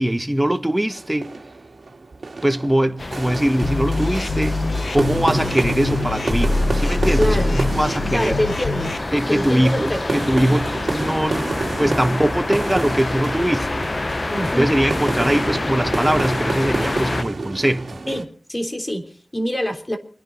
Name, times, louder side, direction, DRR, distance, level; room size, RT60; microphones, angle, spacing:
voice 1, 0.0-1.3 2.4-4.6 4.9-8.4 9.1-13.9 14.6-18.0, right 1 dB, 15° right, 1.4 m, -21 dB
sound 1, 0.9-18.2, right 3 dB, 70° right, 2.4 m, -30 dB
sound 2, 3.0-17.2, left 2 dB, 45° left, 0.9 m, -28 dB
sound 3, 3.6-9.0, left 2 dB, 80° left, 1.4 m, -24 dB
voice 2, 7.2-7.6 8.1-8.9 9.3-10.2 14.3-14.8 18.1-20.0, equal, 25° left, 3.5 m, -25 dB
29.0 x 10.5 x 4.0 m
wide cardioid pair, 55°, 0 cm